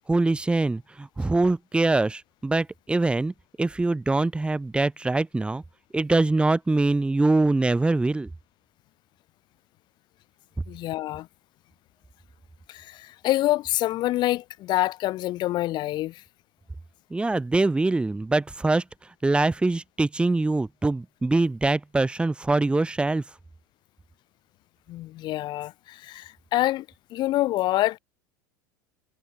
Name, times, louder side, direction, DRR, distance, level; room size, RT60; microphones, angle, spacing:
voice 1, 0.1-5.6 5.9-8.3 17.1-18.8 19.2-23.2, right 2 dB, 10° right, 1.6 m, -23 dB
voice 2, 10.7-11.3 12.7-16.2 24.9-28.0, left 16 dB, 45° left, 1.5 m, -26 dB
figure-of-eight pair, 80°, 11 cm